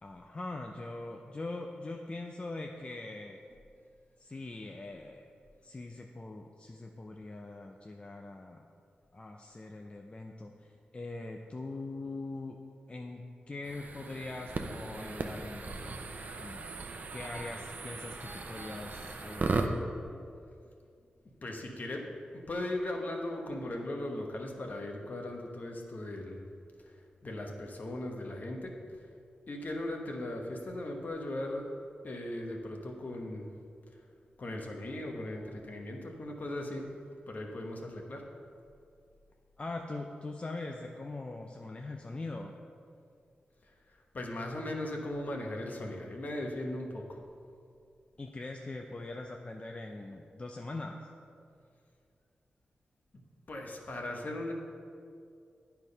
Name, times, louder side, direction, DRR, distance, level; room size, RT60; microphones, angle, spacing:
voice 1, 0.0-3.4 4.2-5.3 5.6-8.7 9.1-12.6 12.9-15.9 16.4-16.8 17.1-19.7 39.6-42.5 48.2-51.1, left 2 dB, 35° left, 2 dB, 0.6 m, -42 dB
sound 1, 13.6-19.7, right 3 dB, 55° right, 0.7 m, -37 dB
voice 2, 21.4-26.4 26.8-28.7 29.5-31.6 32.0-33.4 34.4-36.9 37.3-38.2 43.9-47.2 53.5-54.5, left 1 dB, 55° left, 1 dB, 1.3 m, -38 dB
9.6 x 4.6 x 5.4 m, 2.4 s
cardioid pair, 55°, 3 cm